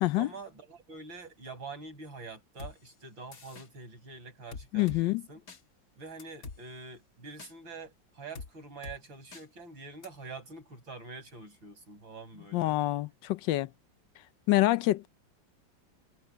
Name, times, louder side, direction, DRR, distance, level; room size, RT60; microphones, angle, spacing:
voice 1, 0.2-5.4 6.0-12.8, right 4 dB, 85° right, 7.1 m, -46 dB
sound 1, 2.6-2.7 3.3-3.7 4.5-5.0 5.5-5.6 6.2-6.6 7.4-7.5 8.3-8.5 8.8-9.0 9.3-9.4 10.0-10.1, left 4 dB, 50° left, 1.8 m, -43 dB
voice 2, 4.7-5.2 12.5-13.7 14.5-15.1, left 17 dB, 75° left, 1.3 m, -26 dB
omnidirectional pair, 2.1 m